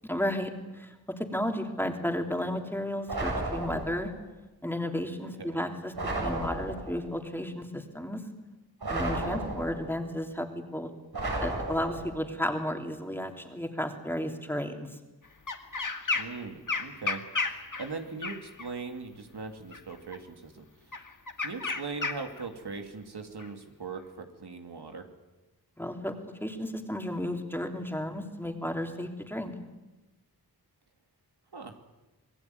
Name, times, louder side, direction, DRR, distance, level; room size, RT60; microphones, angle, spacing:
voice 1, 0.1-4.1 4.6-5.9 6.2-8.2 8.9-10.9 11.4-14.9 25.8-26.1 26.4-29.5, left 1 dB, 5° left, 4 dB, 3.1 m, -33 dB
sound 1, 3.1-4.2 5.9-7.1 8.8-10.0 11.1-12.3, right 2 dB, 70° right, 7.6 m, -33 dB
voice 2, 5.2-5.7 9.2-9.5 16.1-21.0 21.4-25.1 31.5-31.7, right 4 dB, 85° right, 5 dB, 2.9 m, -40 dB
sound 2, 15.5-16.4 16.7-18.7 19.7-20.2 20.9-22.4 23.4-23.5, left 4 dB, 50° left, 2.1 m, -33 dB
26.5 x 19.5 x 9.4 m, 1.1 s
wide cardioid pair, 75°, 39 cm